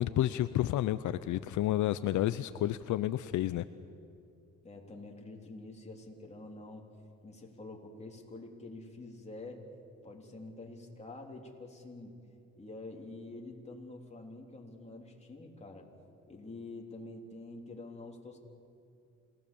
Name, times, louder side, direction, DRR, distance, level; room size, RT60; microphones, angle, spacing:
voice 1, 0.0-3.6, left 13 dB, 75° left, 13 dB, 0.6 m, -30 dB
voice 2, 4.6-6.9 7.2-9.6 10.0-12.2 12.6-15.9 16.3-18.4, left 2 dB, 20° left, 0 dB, 3.6 m, -47 dB
27.5 x 18.5 x 7.1 m, 2.6 s
cardioid pair, 90°, 30 cm